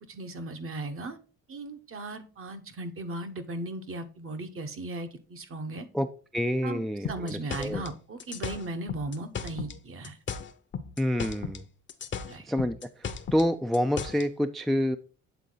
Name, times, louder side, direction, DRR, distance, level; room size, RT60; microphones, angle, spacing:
voice 1, 0.1-1.2 1.5-5.9 6.6-10.2 12.3-12.5, right 2 dB, 45° right, 7 dB, 1.0 m, -37 dB
voice 2, 6.3-7.8 11.0-11.6 12.5-12.8 13.3-15.0, equal, ahead, 9 dB, 0.3 m, -27 dB
sound 1, 7.0-9.8 10.0-11.6 11.9-14.3, left 6 dB, 40° left, 0.7 m, -36 dB
8.2 x 3.7 x 3.8 m, 0.37 s
cardioid pair, 90°, 30 cm